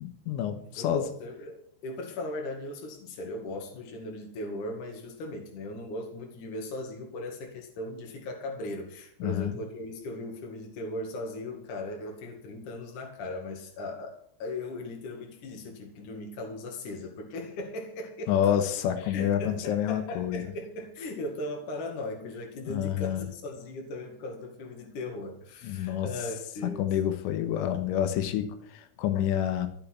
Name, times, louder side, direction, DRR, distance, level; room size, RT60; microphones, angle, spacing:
voice 1, 0.0-1.1 9.2-9.6 18.3-20.4 22.7-23.3 25.6-26.1 26.6-29.7, left 10 dB, 80° left, 9 dB, 3.7 m, -28 dB
voice 2, 0.8-18.6 19.0-26.8, left 2 dB, 50° left, 2 dB, 2.9 m, -38 dB
14.5 x 6.7 x 9.5 m, 0.63 s
omnidirectional pair, 5.6 m